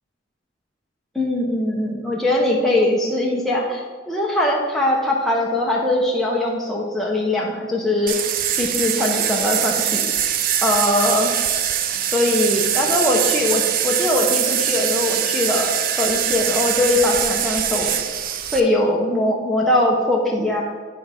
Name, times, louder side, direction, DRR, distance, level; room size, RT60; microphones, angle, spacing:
voice 1, 1.1-8.3 8.6-10.0 10.6-11.3 12.1-18.0 18.5-20.6, left 1 dB, ahead, -4 dB, 0.7 m, -21 dB
sound 1, 8.1-18.6, right 9 dB, 45° right, 0.4 m, -22 dB
9.4 x 3.4 x 5.1 m, 1.5 s
head